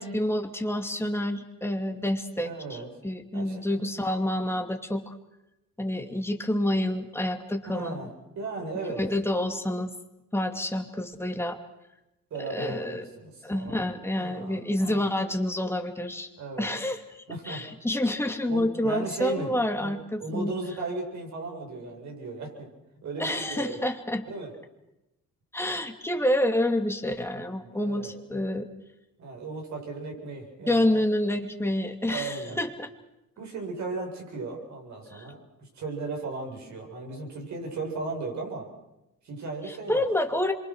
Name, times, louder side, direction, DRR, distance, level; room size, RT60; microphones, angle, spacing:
voice 1, 0.0-5.1 5.8-8.1 9.0-9.9 10.3-11.6 12.5-13.0 13.4-16.3 16.6-20.5 23.2-24.2 25.5-28.7 30.7-32.9 35.1-35.2 39.6-40.5, left 1 dB, 10° left, 4 dB, 2.7 m, -28 dB
voice 2, 2.4-2.9 3.3-3.8 7.7-8.1 8.3-9.0 12.3-15.1 16.4-16.7 17.3-17.6 18.5-19.9 20.2-22.7 23.0-23.8 24.2-24.5 27.3-28.1 29.2-31.0 32.1-32.6 33.4-38.7 39.2-40.0, right 3 dB, 65° right, 1 dB, 8.0 m, -36 dB
26.0 x 24.0 x 6.5 m, 0.92 s
cardioid pair, 90°, 30 cm